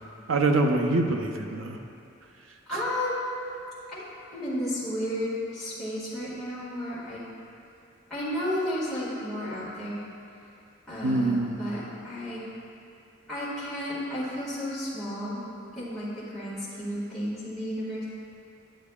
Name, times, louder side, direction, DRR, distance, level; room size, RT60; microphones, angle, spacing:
voice 1, 0.3-1.8 11.0-11.6, right 2 dB, 80° right, 3 dB, 0.6 m, -24 dB
voice 2, 2.7-3.3 3.9-4.0 4.3-7.2 8.1-10.0 10.9-12.4 13.3-15.4 15.7-18.0, equal, ahead, -13 dB, 1.8 m, -32 dB
10.0 x 7.4 x 2.3 m, 2.6 s
head